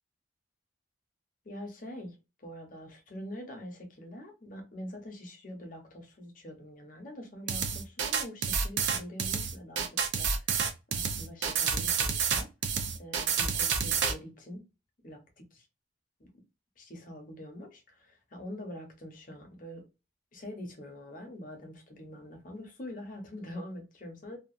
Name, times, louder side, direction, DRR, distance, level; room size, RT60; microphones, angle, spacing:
voice 1, 1.4-10.5 10.9-14.6 15.0-15.7 16.2-16.3 16.8-19.8 20.3-24.4, left 1 dB, 40° left, 0.8 m, -44 dB
sound 1, 7.5-14.1, right 6 dB, 65° right, 0.5 m, -29 dB
2.8 x 2.3 x 2.5 m
head